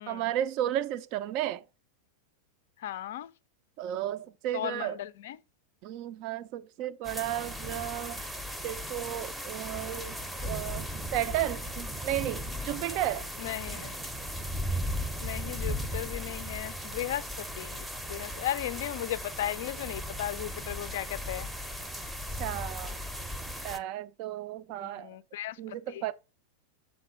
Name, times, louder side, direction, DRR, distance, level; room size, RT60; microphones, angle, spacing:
voice 1, 0.1-1.6 3.8-5.0 5.8-8.3 8.6-13.3 22.4-23.0 23.6-25.2 25.6-26.1, right 12 dB, 45° right, 0.4 m, -33 dB
voice 2, 2.8-3.3 4.5-5.4 13.4-13.9 15.2-21.5 24.8-26.0, left 13 dB, 55° left, 0.4 m, -36 dB
sound 1, 7.0-23.8, equal, 5° right, 0.6 m, -37 dB
7.3 x 3.2 x 6.2 m
figure-of-eight pair, 90°, 0 cm